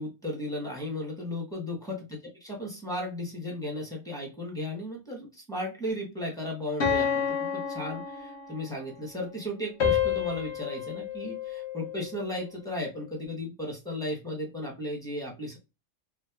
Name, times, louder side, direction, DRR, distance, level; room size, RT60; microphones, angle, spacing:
voice 1, 0.0-7.2 7.5-15.6, left 1 dB, 5° left, -1 dB, 0.9 m, -35 dB
sound 1, 6.8-8.8 9.8-12.2, left 7 dB, 55° left, 1.2 m, -30 dB
4.5 x 2.1 x 2.3 m, 0.27 s
omnidirectional pair, 1.5 m